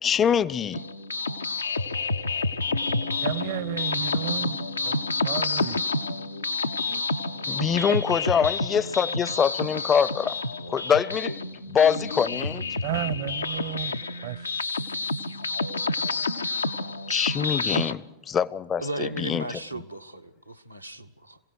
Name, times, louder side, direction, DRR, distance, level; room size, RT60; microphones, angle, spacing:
voice 1, 0.0-0.8 7.5-10.4 10.7-11.3 11.7-12.6 17.1-19.6, left 7 dB, 25° left, 0.6 m, -24 dB
sound 1, 0.7-17.9, left 3 dB, 80° left, 0.6 m, -29 dB
Piano, 2.7-9.9, left 12 dB, 60° left, 1.2 m, -45 dB
voice 2, 3.2-4.6 4.8-5.0 5.2-5.8 6.9-7.1 12.8-14.5, right 13 dB, 50° right, 0.8 m, -32 dB
voice 3, 18.8-21.4, right 1 dB, 90° right, 1.0 m, -35 dB
27.0 x 16.5 x 6.1 m
figure-of-eight pair, 90°, 0 cm